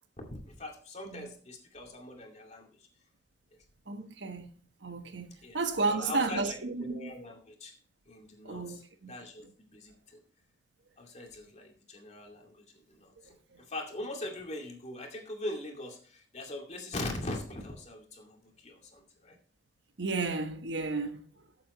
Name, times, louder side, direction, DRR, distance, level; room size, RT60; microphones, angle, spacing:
voice 1, 0.2-2.9 5.4-5.6 5.9-7.8 8.1-10.2 11.0-19.4, left 2 dB, 40° left, 2.4 m, -42 dB
voice 2, 3.9-7.2 8.4-9.1 9.4-9.5 13.2-13.6 20.0-21.3, right 3 dB, 85° right, 1.4 m, -33 dB
13.5 x 7.5 x 3.1 m
head